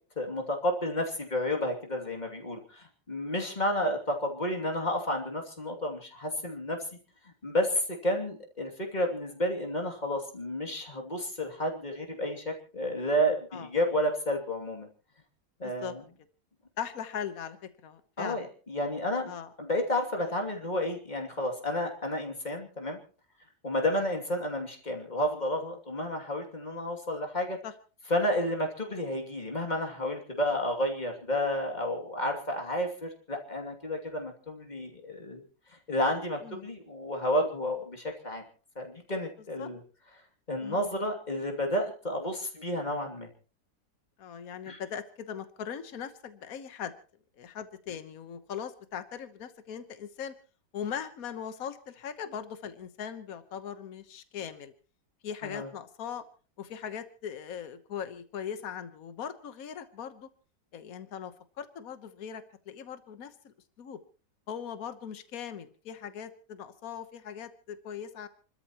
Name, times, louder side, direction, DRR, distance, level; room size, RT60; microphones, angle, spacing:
voice 1, 0.2-6.8 7.4-14.9 15.6-16.0 18.2-19.3 19.6-23.0 23.6-27.6 28.1-35.4 35.7-38.4 38.8-39.8 40.5-43.3 44.7-44.8 55.4-55.7, equal, 25° left, 2 dB, 2.7 m, -31 dB
voice 2, 15.6-15.9 16.8-17.6 17.8-18.5 19.3-19.5 27.6-27.7 36.4-36.7 39.6-39.7 40.6-40.8 44.2-46.9 47.4-50.3 50.7-54.7 55.2-56.2 56.6-60.3 60.7-64.0 64.5-68.3, left 8 dB, 60° left, 10 dB, 1.5 m, -40 dB
29.5 x 13.0 x 3.0 m, 0.37 s
omnidirectional pair, 1.7 m